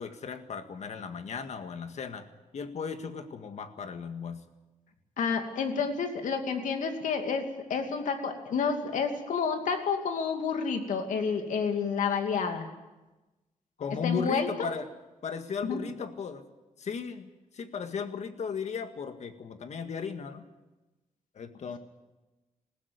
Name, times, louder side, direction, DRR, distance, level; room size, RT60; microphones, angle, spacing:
voice 1, 0.0-2.3 2.5-4.4 13.8-14.9 15.2-16.4 16.8-20.4 21.4-21.8, left 6 dB, 60° left, 8 dB, 1.9 m, -36 dB
voice 2, 5.2-7.4 7.7-12.7 14.0-14.5 15.6-15.8, left 5 dB, 80° left, 5 dB, 2.7 m, -29 dB
20.0 x 15.5 x 9.6 m, 1.1 s
cardioid pair, 95°, 13 cm